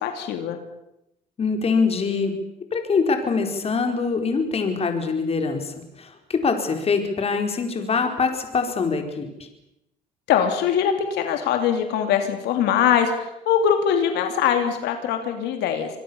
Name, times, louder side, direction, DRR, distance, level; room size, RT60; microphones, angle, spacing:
voice 1, 0.0-0.6 10.3-15.9, left 8 dB, 85° left, 6 dB, 3.0 m, -22 dB
voice 2, 1.4-2.3 2.7-9.3, left 4 dB, 35° left, 5 dB, 4.6 m, -24 dB
26.0 x 21.5 x 7.1 m, 0.86 s
cardioid pair, 110°, 17 cm